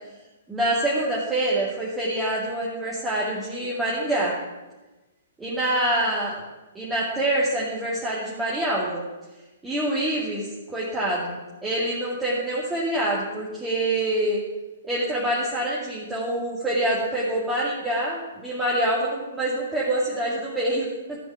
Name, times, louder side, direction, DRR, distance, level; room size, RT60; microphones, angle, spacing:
voice 1, 0.5-4.3 5.4-6.3 6.7-9.0 9.6-11.4 11.6-14.4 14.8-21.2, right 1 dB, 10° right, -7 dB, 2.3 m, -26 dB
14.0 x 5.3 x 9.0 m, 1.1 s
figure-of-eight pair, 120°, 0 cm